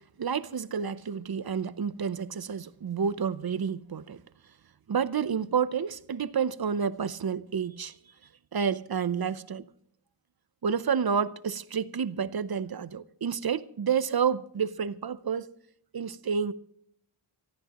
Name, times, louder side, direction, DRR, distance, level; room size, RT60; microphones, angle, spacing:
voice 1, 0.2-4.2 4.9-7.9 8.5-9.6 10.6-15.5 15.9-16.5, right 7 dB, 50° right, 0.7 m, -29 dB
23.5 x 14.5 x 3.0 m
wide cardioid pair, 120°, 49 cm